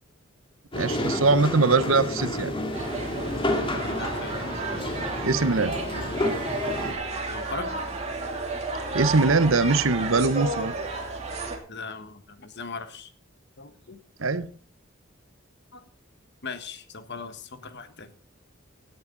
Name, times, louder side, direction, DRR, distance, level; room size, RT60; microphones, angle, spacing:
sound 1, 0.7-6.9, left 1 dB, 25° left, 2.1 m, -30 dB
voice 1, 0.7-2.5 5.2-5.8 8.9-10.7 14.2-14.5, right 3 dB, 75° right, 14 dB, 0.9 m, -22 dB
sound 2, 2.7-11.6, right 3 dB, 30° right, 2.8 m, -32 dB
voice 2, 3.7-4.4 6.2-6.7 7.3-7.8 11.7-13.1 13.6-14.0 15.7-15.8 16.4-18.1, left 4 dB, 55° left, 10 dB, 1.4 m, -39 dB
17.0 x 10.5 x 3.9 m, 0.42 s
head